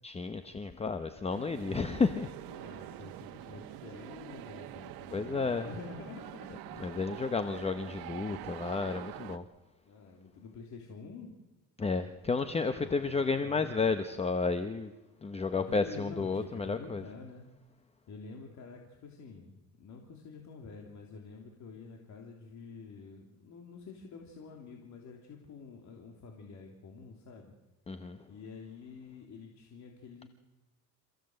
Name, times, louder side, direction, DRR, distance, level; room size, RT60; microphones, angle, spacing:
voice 1, 0.0-2.3 5.1-5.7 6.8-9.5 11.8-14.9 15.2-17.0 27.9-28.2, left 4 dB, 15° left, 10 dB, 0.8 m, -32 dB
sound 1, 1.3-9.4, right 14 dB, 90° right, 1.2 m, -45 dB
voice 2, 2.5-6.7 7.1-7.3 9.8-11.3 12.8-14.0 15.5-17.4 18.1-27.5 28.3-30.3, left 4 dB, 55° left, 2 dB, 3.1 m, -48 dB
27.5 x 15.5 x 7.8 m, 1.1 s
cardioid pair, 145°, 35 cm